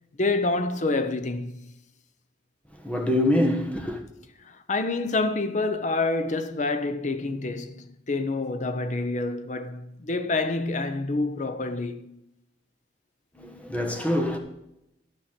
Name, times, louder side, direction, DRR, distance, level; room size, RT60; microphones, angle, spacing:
voice 1, 0.2-1.7 4.5-12.2, left 3 dB, 40° left, 0.8 m, -27 dB
voice 2, 2.8-4.0 13.3-14.4, left 1 dB, 5° left, 1.3 m, -25 dB
13.0 x 5.7 x 7.4 m
head